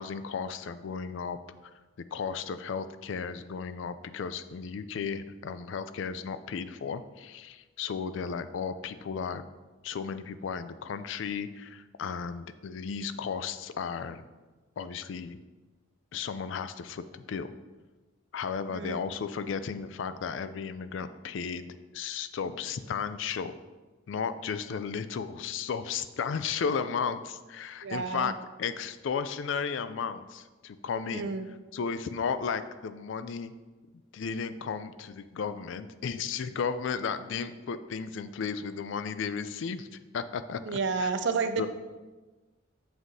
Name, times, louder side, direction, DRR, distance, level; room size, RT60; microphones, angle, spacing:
voice 1, 0.0-1.7 2.1-9.4 9.8-14.3 14.8-15.4 16.1-17.5 18.3-21.7 21.9-23.5 24.1-28.3 28.6-31.3 31.7-33.5 34.1-39.9 40.1-40.6 41.0-41.1 41.6-41.7, left 6 dB, 65° left, 12 dB, 0.4 m, -34 dB
voice 2, 18.7-19.0 27.8-28.3 31.1-31.5 40.7-41.7, right 4 dB, 60° right, 8 dB, 0.5 m, -30 dB
7.1 x 6.1 x 2.7 m, 1.2 s
head